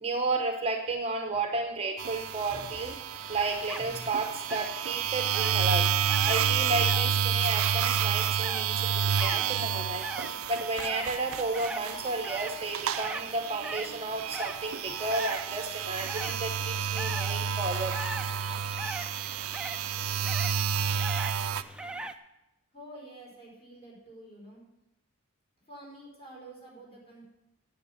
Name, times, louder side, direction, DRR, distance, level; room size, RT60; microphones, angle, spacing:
voice 1, 0.0-3.0 3.3-10.1 10.5-18.0, right 2 dB, 30° right, 4 dB, 0.8 m, -32 dB
sound 1, 2.0-21.6, right 8 dB, 70° right, 0.5 m, -30 dB
sound 2, 3.1-22.1, right 2 dB, 5° right, 0.5 m, -42 dB
voice 2, 22.7-24.6 25.6-27.2, right 1 dB, 25° left, -4 dB, 4.8 m, -48 dB
9.9 x 7.8 x 7.2 m, 0.91 s
head